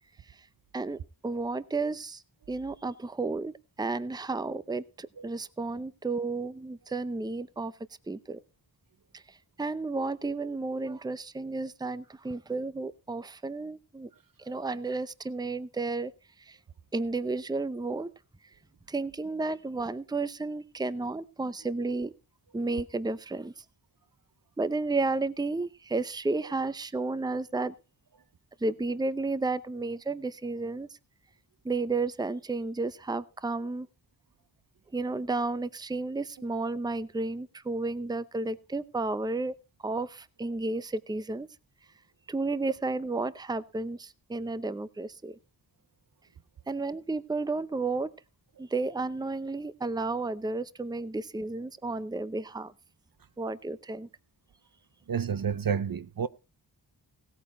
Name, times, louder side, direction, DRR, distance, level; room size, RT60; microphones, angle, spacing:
voice 1, 0.7-2.2 2.5-3.5 3.8-7.7 8.1-8.4 9.1-14.1 14.4-16.1 16.5-16.6 16.9-18.1 18.9-22.1 22.5-23.5 24.6-27.7 28.6-30.9 31.6-33.9 34.9-39.5 39.8-41.5 42.3-45.3 46.7-48.1 48.6-52.7 53.4-54.1, right 3 dB, 10° right, 0.7 m, -32 dB
voice 2, 55.1-56.3, right 7 dB, 55° right, 0.7 m, -29 dB
17.0 x 8.8 x 4.3 m
wide cardioid pair, 75°, 42 cm